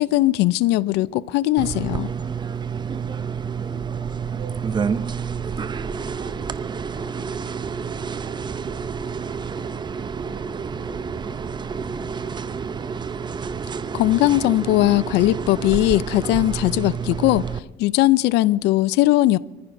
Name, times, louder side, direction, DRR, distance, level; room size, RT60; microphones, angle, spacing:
voice 1, 0.0-2.1 13.9-17.5 17.8-19.4, left 16 dB, 90° left, 0.4 m, -19 dB
sound 1, 1.6-17.6, right 6 dB, 25° right, 0.5 m, -29 dB
voice 2, 3.0-12.8, right 3 dB, 50° right, 5.9 m, -47 dB
25.0 x 14.5 x 2.6 m
cardioid pair, 110°, 17 cm